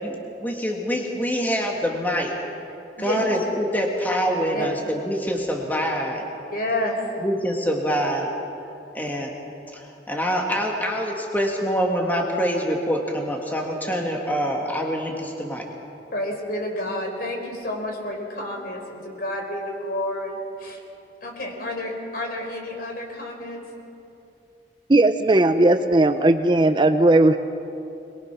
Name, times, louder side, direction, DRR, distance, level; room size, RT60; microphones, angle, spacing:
voice 1, 0.0-2.3 3.0-6.3 7.2-8.3 8.9-9.3 9.7-15.7, equal, 10° left, 0 dB, 2.1 m, -25 dB
voice 2, 6.5-7.0 16.1-20.8 21.2-23.6, left 1 dB, 55° left, 1 dB, 4.4 m, -30 dB
voice 3, 24.9-27.4, right 2 dB, 25° right, 9 dB, 0.6 m, -17 dB
22.5 x 22.5 x 6.1 m, 2.7 s
head